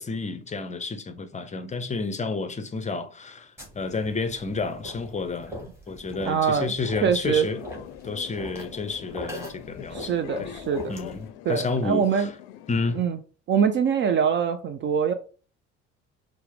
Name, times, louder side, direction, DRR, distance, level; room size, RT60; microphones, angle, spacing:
voice 1, 0.0-7.6 8.0-10.6 10.9-12.3 12.7-13.1, left 4 dB, 20° left, 0.6 m, -31 dB
sound 1, 3.6-11.3, equal, 5° right, 1.7 m, -42 dB
voice 2, 6.3-6.7 7.0-7.5 9.9-10.9 11.5-12.3 13.0-13.2 13.5-15.1, right 7 dB, 35° right, 0.4 m, -23 dB
sound 2, 7.4-13.0, left 12 dB, 65° left, 0.5 m, -43 dB
4.5 x 2.0 x 3.3 m
hypercardioid pair, 55°, 36 cm